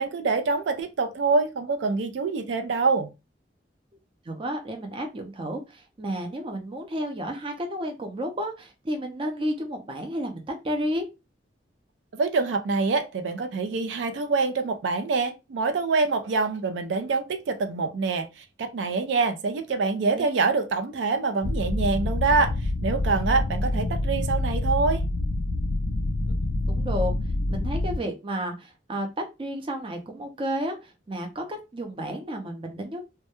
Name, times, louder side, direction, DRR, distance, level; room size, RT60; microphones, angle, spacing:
voice 1, 0.0-3.1 12.1-18.3 18.6-22.5 22.8-25.0, right 4 dB, 90° right, 0.4 m, -25 dB
voice 2, 4.3-11.1 20.1-20.2 26.7-27.1 27.5-33.0, equal, 30° right, 0.4 m, -32 dB
sound 1, 21.4-28.0, left 2 dB, 90° left, 0.4 m, -27 dB
2.2 x 2.1 x 2.8 m
head